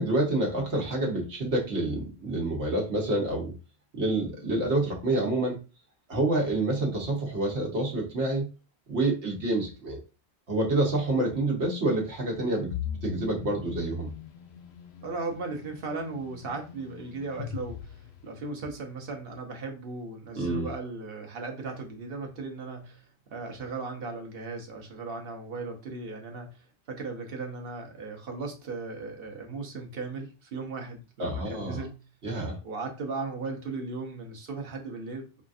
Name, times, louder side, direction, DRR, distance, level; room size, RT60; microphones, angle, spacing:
voice 1, 0.0-3.5 3.9-5.6 6.1-8.5 8.9-10.0 10.5-12.8 13.0-14.1 20.4-20.7 31.2-31.8 32.2-32.6, right 2 dB, 80° right, -1 dB, 1.3 m, -27 dB
sound 1, 12.7-18.7, left 9 dB, 75° left, 0.8 m, -40 dB
voice 2, 15.0-17.9 18.2-26.6 26.9-32.1 32.6-35.4, right 3 dB, 60° right, 2 dB, 1.1 m, -37 dB
5.0 x 2.4 x 2.5 m, 0.31 s
omnidirectional pair, 1.1 m